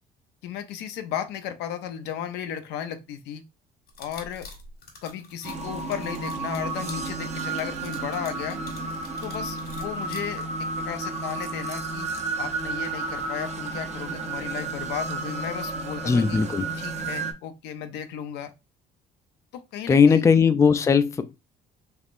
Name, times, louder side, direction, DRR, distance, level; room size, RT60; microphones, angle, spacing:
voice 1, 0.4-3.4 4.0-4.5 5.0-8.6 9.2-12.1 12.4-16.4 16.8-18.5 19.5-20.2, left 9 dB, 85° left, 0.6 m, -34 dB
sound 1, 3.9-10.2, left 4 dB, 70° left, 1.7 m, -45 dB
sound 2, 5.4-17.3, right 3 dB, 40° right, 0.7 m, -32 dB
voice 2, 16.0-16.7 19.9-21.3, left 6 dB, 20° left, 0.3 m, -19 dB
3.5 x 3.1 x 2.4 m
cardioid pair, 110°, 17 cm